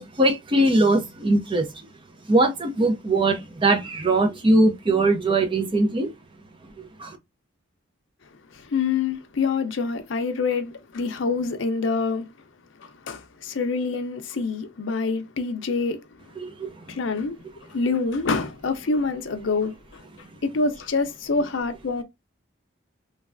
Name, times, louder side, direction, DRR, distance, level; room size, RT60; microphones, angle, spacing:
voice 1, 0.0-1.7 2.3-6.1 7.0-7.1 16.4-16.7, right 2 dB, 25° right, 0.5 m, -21 dB
voice 2, 8.5-12.3 12.8-16.0 16.9-20.0 20.4-22.0, left 4 dB, 70° left, 0.6 m, -26 dB
3.2 x 2.3 x 2.4 m
head